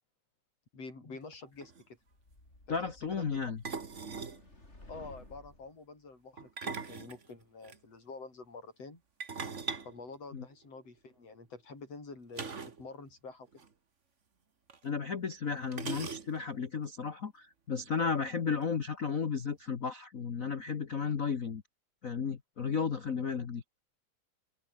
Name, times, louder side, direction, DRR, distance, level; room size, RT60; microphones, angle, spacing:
voice 1, 0.7-2.0 2.7-3.5 4.9-9.0 9.8-12.5 12.8-13.5, left 3 dB, 50° left, 8.6 m, -47 dB
sound 1, 1.3-1.4 1.6-1.8 3.6-4.4 6.4-7.8 9.2-10.9 12.3-12.9 13.1-13.2 13.5-13.7 14.7-14.8 15.7-16.6, right 5 dB, 30° right, 1.5 m, -40 dB
sound 2, 2.1-5.7, left 2 dB, 20° left, 6.4 m, -55 dB
voice 2, 2.7-3.6 10.3-10.4 14.8-21.6 22.0-23.6, left 6 dB, 90° left, 0.7 m, -34 dB
omnidirectional pair, 3.6 m